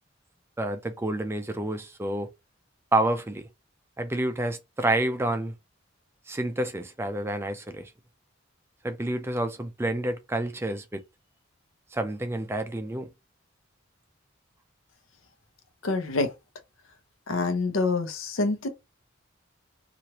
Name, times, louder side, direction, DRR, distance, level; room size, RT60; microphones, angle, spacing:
voice 1, 0.6-2.3 2.9-3.5 4.0-5.5 6.3-7.9 8.8-11.0 11.9-13.1, right 1 dB, 10° right, 0.4 m, -29 dB
voice 2, 15.8-16.3 17.3-18.7, left 3 dB, 80° left, 0.7 m, -26 dB
3.0 x 2.4 x 2.9 m
head